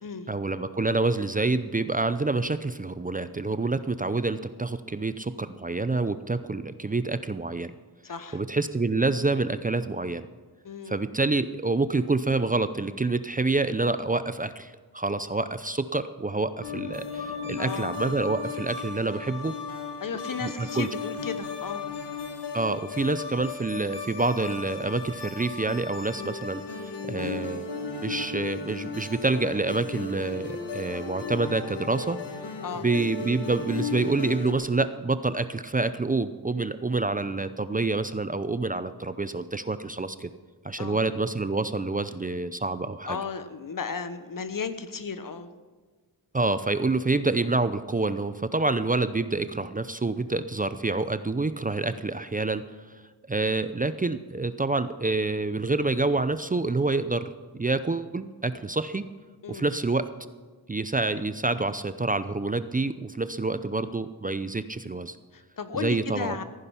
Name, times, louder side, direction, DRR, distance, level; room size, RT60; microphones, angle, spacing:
voice 1, 0.3-7.7 8.3-10.3 10.9-19.6 20.4-20.9 22.5-27.7 28.0-32.2 32.8-40.3 40.6-43.2 46.3-52.6 53.3-59.0 59.5-60.1 60.7-65.2 65.8-66.4, right 3 dB, 20° right, 12 dB, 0.5 m, -27 dB
voice 2, 8.0-8.4 10.6-11.0 17.6-18.0 20.0-21.9 32.6-32.9 40.8-41.0 43.1-45.5 59.4-59.7 65.3-66.4, left 5 dB, 55° left, 11 dB, 1.1 m, -34 dB
sound 1, 16.6-34.5, left 4 dB, 80° left, 1.5 m, -36 dB
15.0 x 9.9 x 5.7 m, 1.4 s
cardioid pair, 70°, 40 cm